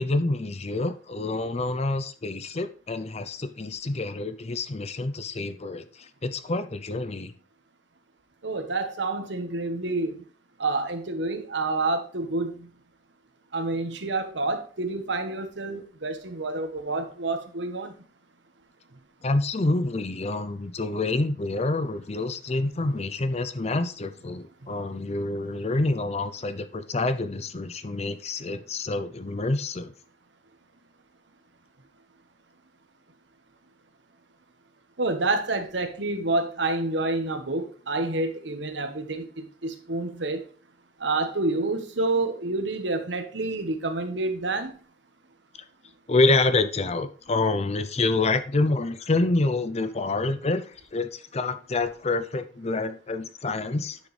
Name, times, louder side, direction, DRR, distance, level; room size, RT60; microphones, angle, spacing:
voice 1, 0.0-7.3 19.2-29.9 46.1-50.7 50.9-54.0, left 2 dB, 35° left, 0.6 m, -27 dB
voice 2, 8.4-10.2 10.6-12.7 13.5-17.9 35.0-40.4 41.0-44.7, right 2 dB, 75° right, 1.3 m, -28 dB
9.7 x 6.3 x 3.3 m
head